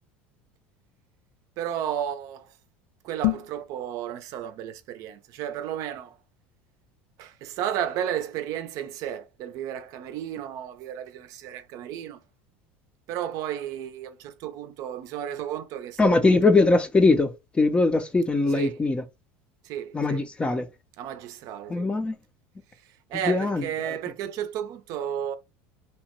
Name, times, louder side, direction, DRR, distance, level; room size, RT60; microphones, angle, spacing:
voice 1, 1.6-2.5 3.0-6.2 7.2-12.2 13.1-16.4 18.5-18.8 19.6-20.3 21.0-21.9 23.1-25.4, right 10 dB, 60° right, 0.5 m, -33 dB
sound 1, 3.1-3.6, left 18 dB, 85° left, 0.5 m, -26 dB
voice 2, 16.0-19.0 19.9-20.7 21.7-22.2 23.3-24.0, left 3 dB, 15° left, 0.5 m, -21 dB
2.8 x 2.1 x 2.9 m
supercardioid pair, 105°, 6 cm